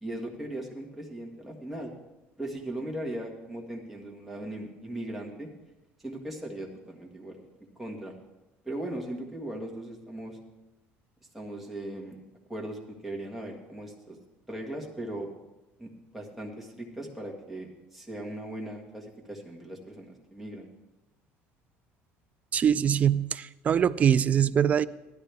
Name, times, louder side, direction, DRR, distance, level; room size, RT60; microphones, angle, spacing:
voice 1, 0.0-1.9 2.4-5.5 6.0-7.4 7.8-8.1 8.6-10.4 11.3-12.2 12.5-14.2 14.5-15.3 15.8-20.7, right 1 dB, 5° right, -1 dB, 1.7 m, -38 dB
voice 2, 22.5-24.8, right 8 dB, 30° right, 16 dB, 0.3 m, -23 dB
15.5 x 12.0 x 3.5 m, 1.0 s
cardioid pair, 145°, 5 cm